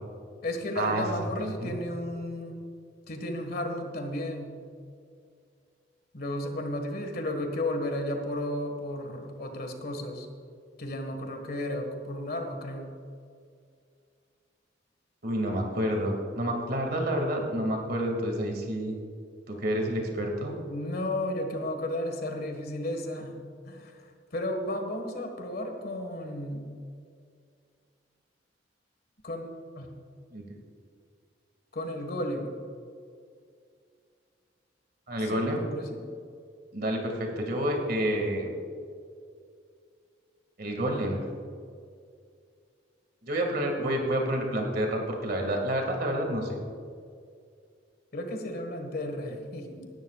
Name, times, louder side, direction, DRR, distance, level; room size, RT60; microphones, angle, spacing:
voice 1, 0.4-2.6 3.1-4.6 6.1-10.3 10.8-12.9 20.7-23.9 24.3-26.7 29.2-29.5 29.8-29.9 31.7-32.5 35.2-36.0 48.1-49.9, left 1 dB, 55° left, 4 dB, 1.6 m, -33 dB
voice 2, 1.4-1.8 15.2-19.0 19.5-20.6 30.3-30.4 35.1-35.7 36.7-38.5 40.6-41.2 43.2-46.6, right 1 dB, 60° right, 2 dB, 2.1 m, -29 dB
18.0 x 12.5 x 2.4 m, 2.3 s
head